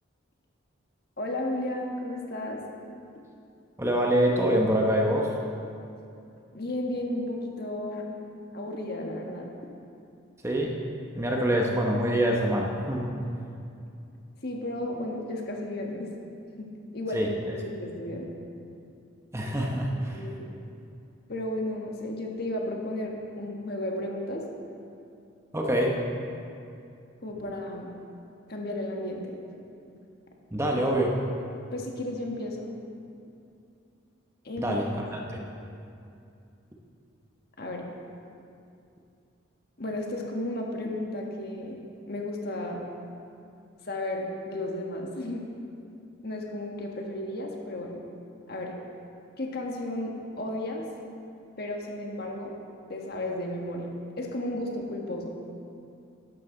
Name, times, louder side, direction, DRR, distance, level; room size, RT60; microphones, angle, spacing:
voice 1, 1.2-2.6 6.5-8.2 8.5-9.5 14.4-16.1 16.6-16.7 16.9-18.3 20.1-20.5 21.3-24.4 27.2-27.9 28.5-29.3 31.7-32.7 34.4-34.7 37.6-37.9 39.8-42.8 43.8-45.4 46.2-48.0 48.5-48.7 49.4-50.8 51.6-52.5 52.9-53.9 54.2-55.3, left 1 dB, 50° left, 0 dB, 1.4 m, -33 dB
voice 2, 3.8-5.3 10.4-10.8 11.1-13.1 17.1-17.3 19.3-20.2 25.5-26.0 30.5-31.1 34.6-35.4, right 1 dB, 15° right, -1 dB, 0.9 m, -25 dB
12.5 x 11.0 x 3.9 m, 2.6 s
head